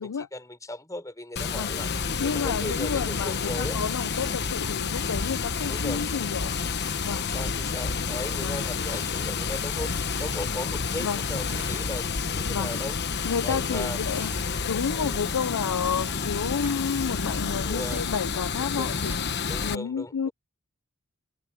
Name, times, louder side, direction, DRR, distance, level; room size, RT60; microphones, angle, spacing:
voice 1, 0.0-1.9 2.2-3.8 5.7-6.0 7.1-9.9 10.2-12.9 13.4-14.0 14.9-15.3 17.5-18.0 18.8-18.9 19.5-20.3, left 1 dB, 15° left, 4.0 m, -37 dB
Water, 1.4-19.7, left 5 dB, 50° left, 1.1 m, -29 dB
voice 2, 2.2-6.5 7.0-7.3 8.4-8.6 11.0-11.2 12.5-12.7 13.2-14.3 14.6-19.2 19.6-20.3, left 6 dB, 90° left, 0.5 m, -30 dB
Sink (filling or washing), 6.2-14.4, left 5 dB, 70° left, 5.4 m, -53 dB
Tearing, 8.5-9.1 10.0-10.5 11.2-11.8 12.5-12.9 13.7-14.6 15.3-15.5 16.3-16.8 17.7-18.0 19.0-19.2, right 2 dB, 10° right, 2.1 m, -47 dB
head